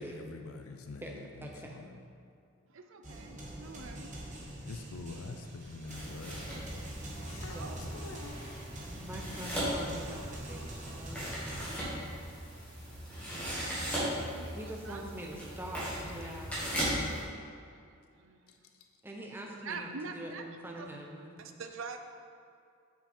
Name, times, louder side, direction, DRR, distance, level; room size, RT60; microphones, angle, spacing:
voice 1, 0.0-2.0 4.6-6.4 7.3-8.6 18.5-18.9, left 3 dB, 75° left, 5 dB, 0.5 m, -46 dB
voice 2, 1.0-1.8 7.5-7.9 9.0-12.1 14.5-16.9 19.0-21.3, right 1 dB, 10° right, -1 dB, 0.7 m, -44 dB
voice 3, 2.7-4.5 7.5-7.9 13.3-14.6 14.8-15.0 16.2-16.3 18.2-18.6 19.6-20.4 21.4-22.0, right 4 dB, 60° right, 6 dB, 0.5 m, -45 dB
sound 1, 3.0-11.7, right 1 dB, 35° right, 1.0 m, -45 dB
sound 2, 5.9-17.2, equal, 5° left, 1.8 m, -38 dB
7.1 x 5.6 x 4.4 m, 2.4 s
head